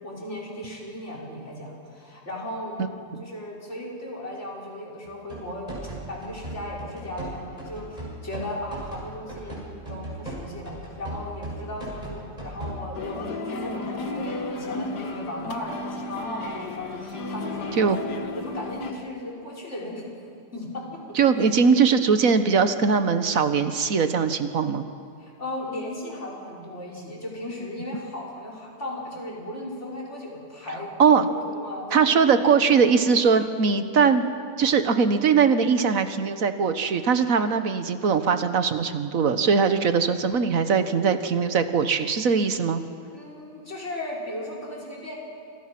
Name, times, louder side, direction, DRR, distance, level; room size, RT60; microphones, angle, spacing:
voice 1, 0.0-2.8 3.2-5.7 6.1-9.6 9.9-20.1 20.5-21.0 21.4-21.5 25.2-30.9 31.4-32.3 43.1-45.2, left 1 dB, 40° left, -4 dB, 5.5 m, -36 dB
sound 1, 5.1-12.9, right 1 dB, 25° right, 7.1 m, -37 dB
sound 2, 12.9-18.9, left 2 dB, 75° left, 2.2 m, -33 dB
voice 2, 21.1-24.9 31.0-31.3 31.9-34.2 34.6-42.8, right 5 dB, 55° right, 9 dB, 1.5 m, -21 dB
28.5 x 23.0 x 6.0 m, 2.4 s
omnidirectional pair, 1.8 m